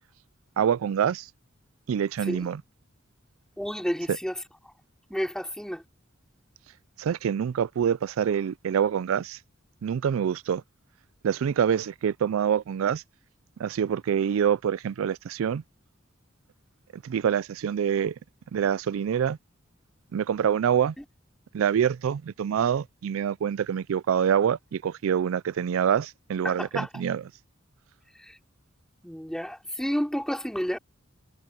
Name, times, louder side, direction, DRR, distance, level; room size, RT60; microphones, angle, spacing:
voice 1, 0.6-1.3 1.9-2.6 7.0-9.4 9.8-10.6 11.2-13.0 13.6-15.6 16.9-18.1 18.5-19.4 20.1-20.9 21.5-27.2, right 8 dB, 85° right, 0.4 m, -26 dB
voice 2, 3.6-4.4 5.1-5.8 26.4-26.9 28.2-28.4 29.0-30.8, equal, 5° left, 3.3 m, -30 dB
head